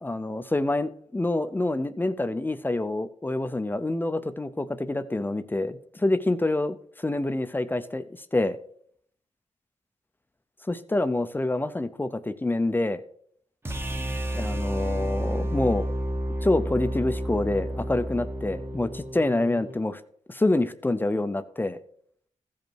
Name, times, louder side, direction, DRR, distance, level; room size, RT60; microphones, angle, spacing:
voice 1, 0.0-8.6 10.7-13.0 14.3-15.9 16.4-20.0 20.3-21.8, left 2 dB, 15° left, 12 dB, 0.5 m, -27 dB
sound 1, 13.6-19.8, right 1 dB, 20° right, 0.9 m, -30 dB
15.0 x 5.3 x 4.5 m, 0.64 s
wide cardioid pair, 115°, 13 cm